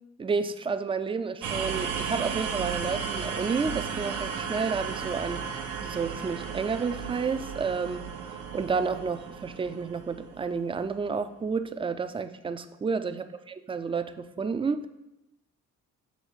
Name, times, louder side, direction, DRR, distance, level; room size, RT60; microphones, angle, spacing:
voice 1, 0.2-14.9, right 5 dB, 20° right, 10 dB, 0.3 m, -31 dB
sound 1, 1.4-11.2, right 6 dB, 85° right, 0.8 m, -35 dB
6.3 x 3.0 x 5.6 m, 0.93 s
cardioid pair, 90°, 30 cm